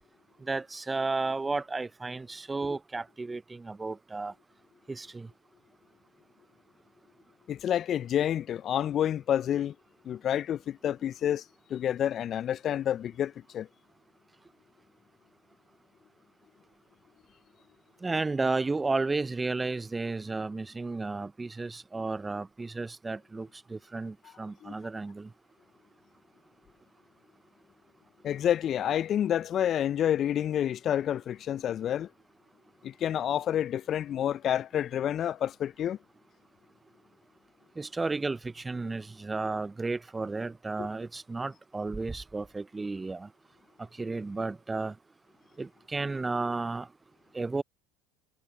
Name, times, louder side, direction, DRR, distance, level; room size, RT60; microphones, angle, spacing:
voice 1, 0.4-4.3 4.9-5.3 18.0-25.3 37.8-43.3 44.0-44.9 45.6-46.9 47.3-47.6, right 3 dB, 15° right, 0.6 m, -33 dB
voice 2, 7.5-9.7 10.1-11.4 11.7-13.7 24.6-24.7 28.2-32.1 32.8-36.0 40.8-40.9, left 10 dB, 45° left, 0.4 m, -29 dB
hypercardioid pair, 75°, 0 cm